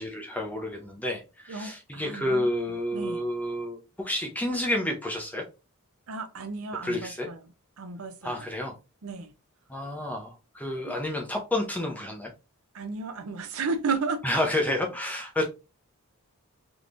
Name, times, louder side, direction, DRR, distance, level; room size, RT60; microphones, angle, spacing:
voice 1, 0.0-5.4 6.8-7.3 8.2-8.7 9.7-12.3 14.2-15.5, left 1 dB, 5° left, 0.6 m, -30 dB
voice 2, 1.5-3.2 6.1-7.4 7.8-8.5 9.0-9.3 10.9-11.0 12.7-14.4, right 4 dB, 70° right, 0.6 m, -34 dB
3.6 x 3.0 x 2.5 m
head